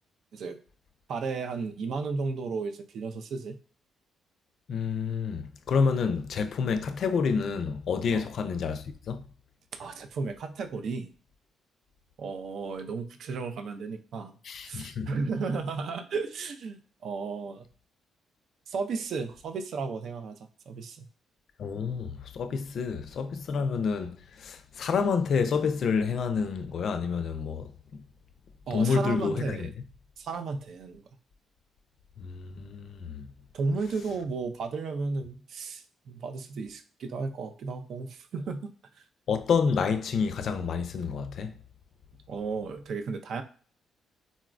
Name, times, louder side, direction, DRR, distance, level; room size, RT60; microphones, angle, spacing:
voice 1, 1.1-3.6 8.1-8.3 9.8-11.1 12.2-14.3 14.6-17.6 18.7-20.4 20.7-21.0 28.7-29.7 30.2-31.0 33.5-38.7 39.0-39.1 42.3-43.4, right 4 dB, 65° right, 0.4 m, -34 dB
voice 2, 4.7-9.2 14.4-15.1 21.6-27.7 28.7-29.7 32.2-33.3 39.3-41.5, left 5 dB, 60° left, 0.4 m, -28 dB
3.9 x 2.1 x 2.4 m
cardioid pair, 90°, 0 cm